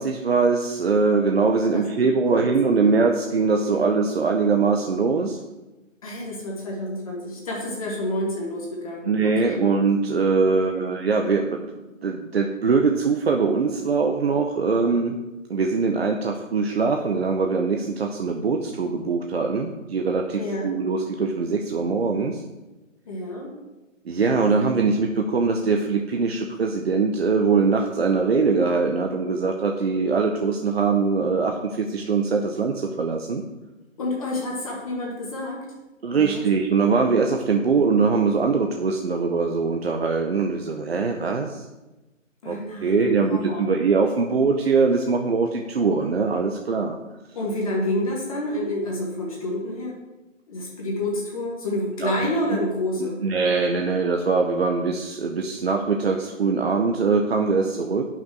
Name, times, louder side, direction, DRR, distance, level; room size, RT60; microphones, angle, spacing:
voice 1, 0.0-5.4 9.1-11.6 12.0-15.2 15.5-22.4 24.1-33.4 36.0-41.6 42.5-47.0 52.0-52.1 53.2-58.0, right 4 dB, 50° right, 2 dB, 0.7 m, -22 dB
voice 2, 2.2-2.9 3.7-3.8 6.0-9.6 10.5-10.8 20.4-20.7 23.0-23.5 34.0-35.6 36.1-36.5 42.4-43.7 47.3-50.0 50.5-53.2, left 1 dB, 25° left, -3 dB, 1.4 m, -29 dB
9.1 x 5.9 x 4.5 m, 1.1 s
hypercardioid pair, 165°, 39 cm